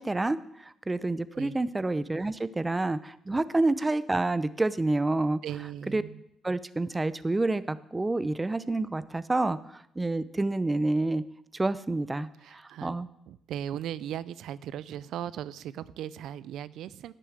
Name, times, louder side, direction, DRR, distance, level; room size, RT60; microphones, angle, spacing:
voice 1, 0.0-5.4 5.9-6.0 6.4-11.2 11.5-13.1, right 2 dB, 15° right, 16 dB, 0.6 m, -28 dB
voice 2, 5.4-6.2 12.4-13.0 13.3-17.1, right 10 dB, 80° right, 18 dB, 0.4 m, -38 dB
10.5 x 6.9 x 8.7 m, 0.75 s
cardioid pair, 90°, 0 cm